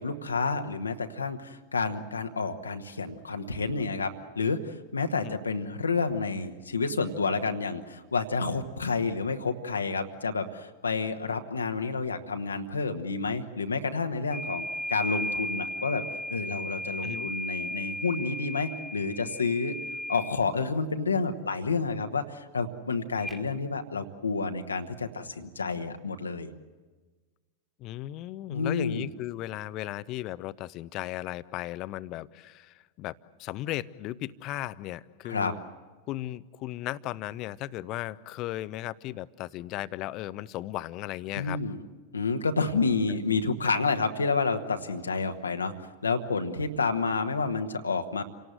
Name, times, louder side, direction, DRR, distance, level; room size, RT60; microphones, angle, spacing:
voice 1, 0.0-16.0 16.3-19.8 20.1-26.5 28.5-29.1 35.2-35.5 41.3-41.8 42.1-45.7 46.0-48.2, left 4 dB, 75° left, 6 dB, 1.2 m, -29 dB
sound 1, 14.3-20.4 23.2-23.4, left 1 dB, 5° right, 2.0 m, -35 dB
voice 2, 27.8-35.6 36.1-41.6, left 15 dB, 40° left, 17 dB, 0.7 m, -36 dB
28.0 x 18.5 x 7.9 m, 1.3 s
figure-of-eight pair, 90°, 0 cm